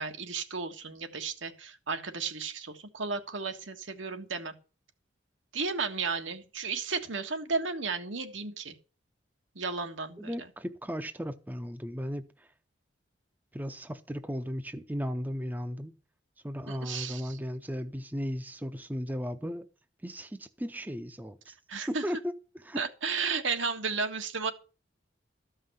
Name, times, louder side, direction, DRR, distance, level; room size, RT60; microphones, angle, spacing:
voice 1, 0.0-4.5 5.5-8.7 9.5-10.3 16.7-17.4 21.7-22.0 22.7-24.5, right 4 dB, 90° right, 1.6 m, -33 dB
voice 2, 10.2-12.5 13.5-15.9 16.4-19.7 20.0-21.6 21.9-22.3 22.6-22.8, equal, 10° right, 0.6 m, -36 dB
13.5 x 5.6 x 7.8 m
head